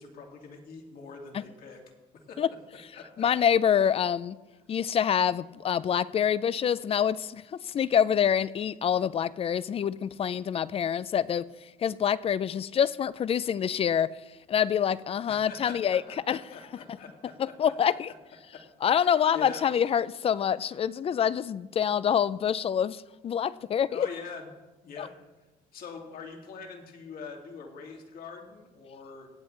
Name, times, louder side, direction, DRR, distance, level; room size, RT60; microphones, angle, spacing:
voice 1, 0.0-1.8 2.1-2.4 2.9-3.3 15.3-17.5 18.5-19.6 23.9-24.5 24.8-25.1 25.7-29.3, left 5 dB, 60° left, 1 dB, 2.4 m, -44 dB
voice 2, 3.2-4.4 4.7-14.1 14.5-16.0 16.3-16.4 17.4-18.1 18.8-24.1 25.0-25.1, left 8 dB, 35° left, 18 dB, 0.4 m, -26 dB
18.0 x 8.2 x 3.3 m, 1.1 s
cardioid pair, 110°, 17 cm